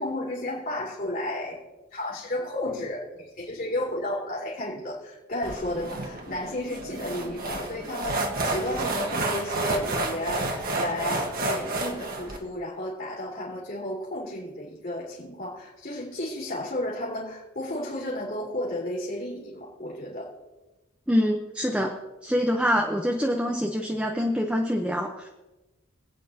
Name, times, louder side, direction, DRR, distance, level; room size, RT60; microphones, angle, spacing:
voice 1, 0.0-1.6 1.9-3.0 3.4-20.3, left 1 dB, 45° left, -6 dB, 3.4 m, -32 dB
sound 1, 5.4-12.4, right 2 dB, 45° right, 1.5 m, -30 dB
voice 2, 21.1-21.9 22.2-25.3, equal, 5° right, 1 dB, 0.8 m, -25 dB
26.5 x 8.9 x 2.9 m, 1.1 s
head